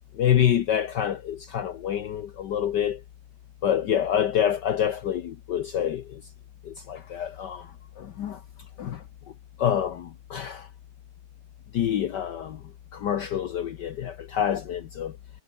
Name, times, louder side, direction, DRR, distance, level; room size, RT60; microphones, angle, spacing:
voice 1, 0.2-3.0 3.6-6.0 6.7-7.6 8.0-8.4 8.8-9.0 9.6-10.7 11.7-12.6 12.9-15.1, left 9 dB, 60° left, 1.4 m, -26 dB
omnidirectional pair, 2.3 m